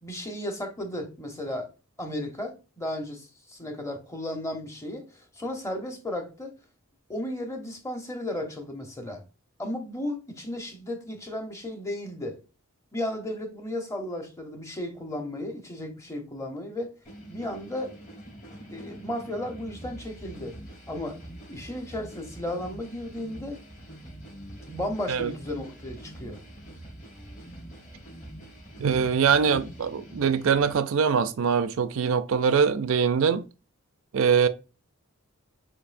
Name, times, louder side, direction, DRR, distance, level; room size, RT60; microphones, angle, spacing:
voice 1, 0.0-1.7 2.0-6.5 7.1-9.2 9.6-12.4 12.9-16.9 17.3-17.9 18.7-20.6 20.9-21.2 21.5-23.6 24.7-26.4, left 1 dB, 15° left, 0.9 m, -34 dB
sound 1, 17.0-30.7, right 1 dB, 35° left, 1.8 m, -44 dB
voice 2, 28.8-33.4 34.1-34.5, right 6 dB, 60° right, 0.4 m, -23 dB
6.8 x 2.6 x 2.5 m
head